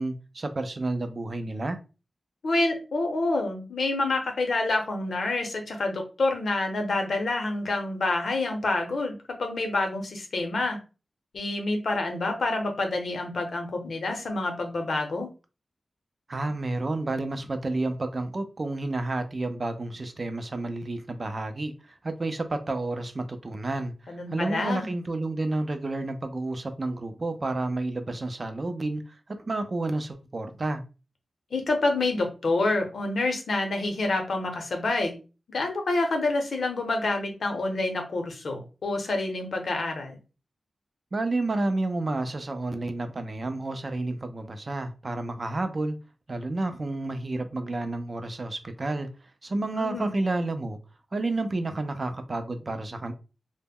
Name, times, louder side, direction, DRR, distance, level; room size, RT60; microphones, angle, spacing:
voice 1, 0.0-1.8 16.3-29.2 29.5-30.8 41.1-46.0 46.3-49.1 49.4-50.8 51.1-53.1, right 2 dB, 40° right, 0.4 m, -30 dB
voice 2, 2.4-10.8 11.3-15.3 24.1-24.9 31.5-35.1 35.5-40.2 49.5-50.1, left 2 dB, 70° left, 0.7 m, -27 dB
2.1 x 2.0 x 3.5 m
wide cardioid pair, 100°, 0 cm